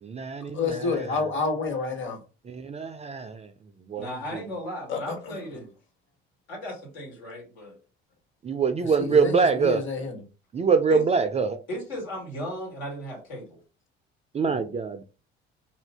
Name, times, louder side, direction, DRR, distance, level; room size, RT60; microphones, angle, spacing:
voice 1, 0.0-1.1 2.5-3.5 3.9-4.4 8.4-9.8 10.5-11.6 14.3-15.0, right 5 dB, 20° right, 0.3 m, -25 dB
voice 2, 0.5-2.2 4.9-5.2 9.0-10.2, left 4 dB, 40° left, 1.3 m, -28 dB
voice 3, 4.0-5.7 6.5-7.8 10.9-11.0 11.7-13.6, equal, 75° left, 1.5 m, -36 dB
2.7 x 2.5 x 3.3 m
hypercardioid pair, 60°, 31 cm